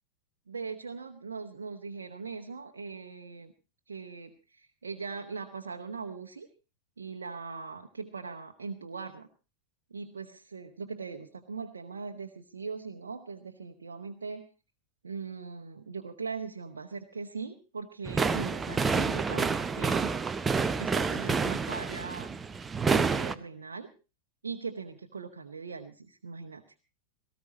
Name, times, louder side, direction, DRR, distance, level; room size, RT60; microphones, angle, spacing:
voice 1, 0.5-3.5 3.9-6.5 7.0-9.3 9.9-14.5 15.0-20.1 20.8-22.3 22.9-23.9 24.4-26.6, right 5 dB, 70° right, 3 dB, 1.0 m, -40 dB
sound 1, 18.1-23.4, right 5 dB, 15° right, 0.8 m, -28 dB
18.5 x 15.0 x 4.1 m, 0.33 s
figure-of-eight pair, 90°, 0 cm